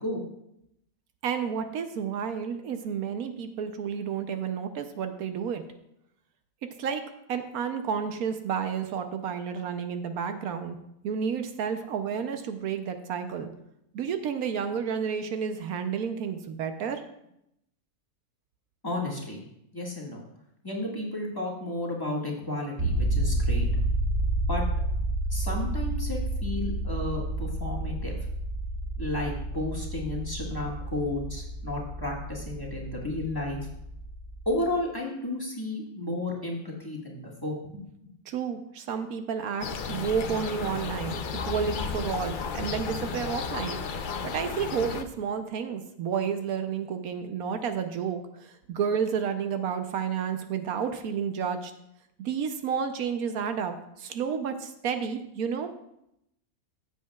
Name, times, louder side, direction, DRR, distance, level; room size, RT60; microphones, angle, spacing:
voice 1, 1.2-5.6 6.8-7.0 7.3-10.8 11.0-13.5 13.9-17.0 38.3-43.8 44.2-48.2 48.7-51.7 52.2-55.7, right 7 dB, 80° right, 8 dB, 1.2 m, -31 dB
voice 2, 18.8-19.4 19.7-20.2 20.6-23.7 24.5-24.6 25.3-28.1 29.0-33.6 34.4-37.6 43.0-43.1, left 1 dB, 15° left, -3 dB, 1.6 m, -32 dB
sound 1, 22.8-34.7, right 1 dB, 25° right, 1.9 m, -30 dB
sound 2, 39.6-45.0, left 5 dB, 65° left, 0.5 m, -33 dB
15.0 x 7.4 x 2.3 m, 0.79 s
omnidirectional pair, 1.5 m